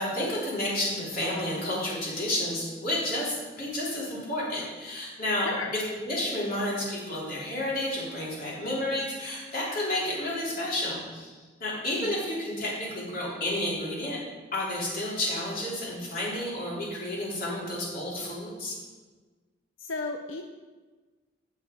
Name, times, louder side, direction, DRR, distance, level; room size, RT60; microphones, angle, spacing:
voice 1, 0.0-14.2 14.5-18.7, left 1 dB, 50° left, -5 dB, 3.3 m, -31 dB
voice 2, 19.8-20.4, left 3 dB, 90° left, 5 dB, 0.5 m, -34 dB
9.1 x 6.3 x 5.1 m, 1.3 s
head